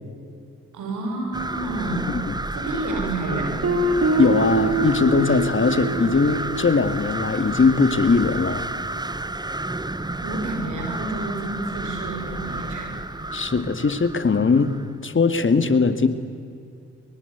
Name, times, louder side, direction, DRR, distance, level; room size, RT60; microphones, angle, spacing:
voice 1, 0.7-2.1 2.5-3.7 10.2-12.9, right 2 dB, 85° right, 3 dB, 5.9 m, -29 dB
sound 1, 1.3-14.9, right 2 dB, 15° right, 1.1 m, -31 dB
sound 2, 2.7-7.7, equal, ahead, 2.3 m, -39 dB
Guitar, 3.6-8.3, right 3 dB, 55° right, 2.9 m, -26 dB
voice 2, 4.2-8.6 13.3-14.7 15.0-16.1, left 4 dB, 40° left, 10 dB, 2.2 m, -20 dB
23.5 x 23.0 x 8.2 m, 2.4 s
supercardioid pair, 55°, 29 cm